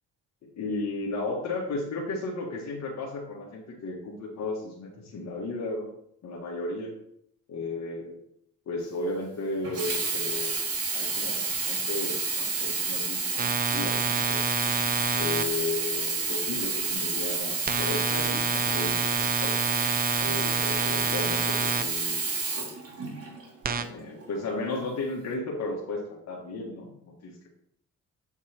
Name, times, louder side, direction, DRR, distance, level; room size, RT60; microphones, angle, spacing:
voice 1, 0.6-5.9 6.2-6.9 7.5-8.2 8.7-14.5 15.1-19.5 20.2-22.7 23.7-26.9 27.2-27.5, left 2 dB, 60° left, -2 dB, 1.8 m, -34 dB
Sink (filling or washing), 9.6-23.4 24.2-24.3, right 4 dB, 50° right, 2.6 m, -29 dB
sound 1, 13.4-15.4 17.7-21.8 23.6-23.8, right 5 dB, 30° right, 0.6 m, -29 dB
8.7 x 4.5 x 4.4 m, 0.71 s
cardioid pair, 90°, 30 cm